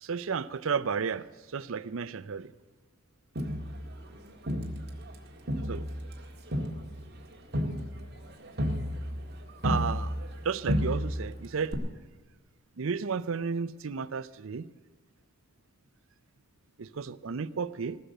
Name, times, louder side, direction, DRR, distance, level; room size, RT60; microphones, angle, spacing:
voice 1, 0.0-1.2 1.5-2.5 5.7-5.8 9.6-10.2 10.4-11.7 12.8-14.7 16.8-18.0, right 5 dB, 65° right, 16 dB, 0.5 m, -32 dB
Crowd, 3.4-5.2 5.5-10.4 10.7-11.3 11.7-11.8, equal, 50° right, 1.8 m, -32 dB
19.5 x 6.7 x 8.9 m, 1.4 s
head